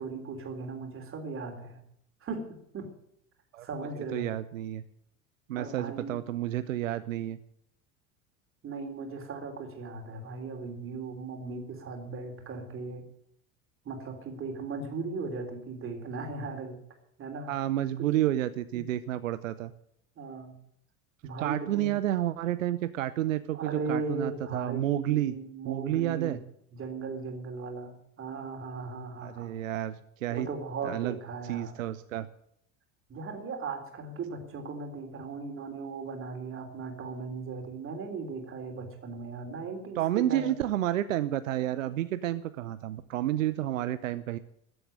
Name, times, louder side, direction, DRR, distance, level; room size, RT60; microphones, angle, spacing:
voice 1, 0.0-1.8 2.2-2.9 3.6-4.3 5.6-6.2 8.6-13.1 13.9-16.8 17.2-17.6 18.0-18.1 18.7-18.9 20.2-20.5 21.2-21.9 23.5-26.4 26.7-29.6 30.3-31.8 33.1-40.5, right 4 dB, 30° right, 4 dB, 3.5 m, -37 dB
voice 2, 4.1-4.8 5.5-7.4 17.5-19.7 21.4-25.3 25.7-26.4 29.2-30.5 30.8-31.2 31.5-32.3 40.0-44.4, right 13 dB, 70° right, 13 dB, 0.7 m, -30 dB
13.5 x 8.0 x 9.8 m, 0.72 s
figure-of-eight pair, 75°, 41 cm